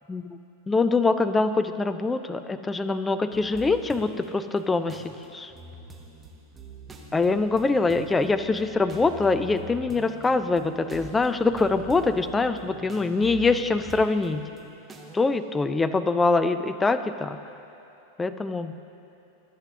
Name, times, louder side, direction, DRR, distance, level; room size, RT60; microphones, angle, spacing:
voice 1, 0.7-5.5 7.1-14.5 15.1-17.4 18.2-18.7, left 3 dB, 15° left, 11 dB, 0.4 m, -24 dB
sound 1, 3.3-4.3 4.6-15.2, right 3 dB, 15° right, 1.0 m, -44 dB
23.5 x 7.9 x 2.8 m, 2.8 s
figure-of-eight pair, 90°, 0 cm